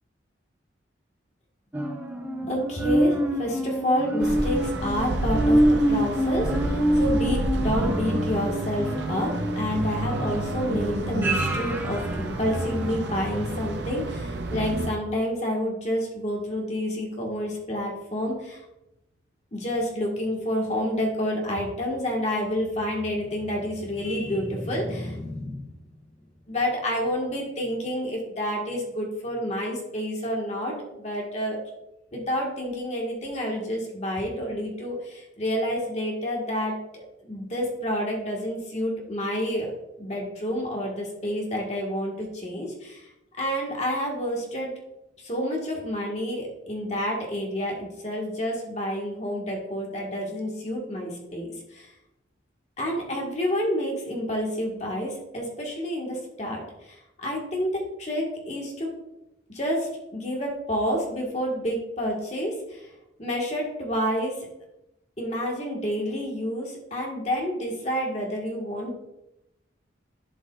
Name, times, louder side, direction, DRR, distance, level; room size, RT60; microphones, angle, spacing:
sound 1, 1.7-13.2 13.6-13.7, right 1 dB, 10° right, 0.7 m, -26 dB
voice 1, 2.1-18.6 19.5-25.8 26.5-31.6 32.1-39.7 40.0-43.1 43.4-44.7 45.2-51.9 52.8-58.9 59.5-62.9 63.2-64.4 65.2-69.0, equal, 35° left, -1 dB, 1.7 m, -29 dB
sound 2, 4.2-14.9, right 1 dB, 65° right, 0.7 m, -30 dB
11.0 x 5.5 x 2.5 m, 0.89 s
head